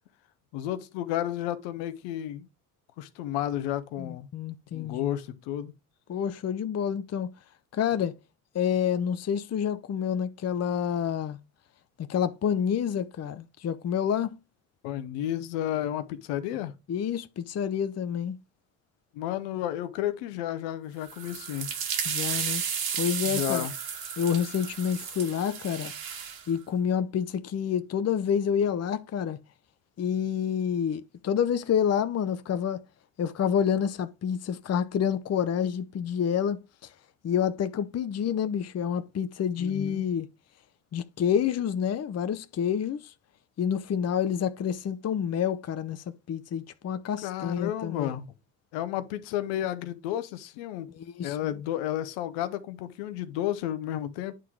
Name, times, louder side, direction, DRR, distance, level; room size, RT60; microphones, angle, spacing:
voice 1, 0.5-2.5 3.0-4.3 4.7-5.7 14.8-16.7 19.1-21.7 23.2-23.7 39.6-40.0 47.2-48.3 48.7-50.9 51.2-54.4, left 12 dB, 75° left, 1.1 m, -32 dB
voice 2, 4.0-5.2 6.1-7.3 7.7-8.1 8.5-11.4 12.0-14.4 16.9-18.4 22.0-22.6 23.0-23.7 24.2-25.9 26.5-29.4 30.0-32.8 33.2-36.9 37.2-40.3 40.9-43.1 43.6-48.2 50.9-51.5, left 8 dB, 35° left, 0.8 m, -28 dB
sound 1, 21.0-26.4, right 7 dB, 55° right, 2.1 m, -33 dB
9.2 x 3.8 x 4.6 m
hypercardioid pair, 70°, 43 cm